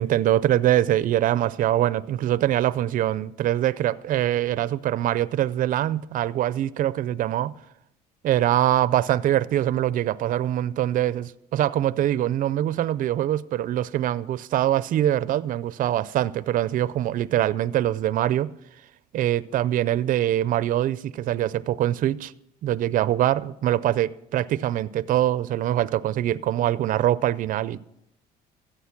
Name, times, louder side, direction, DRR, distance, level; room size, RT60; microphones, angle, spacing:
voice 1, 0.0-7.5 8.2-18.5 19.1-22.3 22.6-27.8, right 12 dB, 55° right, 0.4 m, -23 dB
14.0 x 8.0 x 5.9 m
cardioid pair, 110°, 17 cm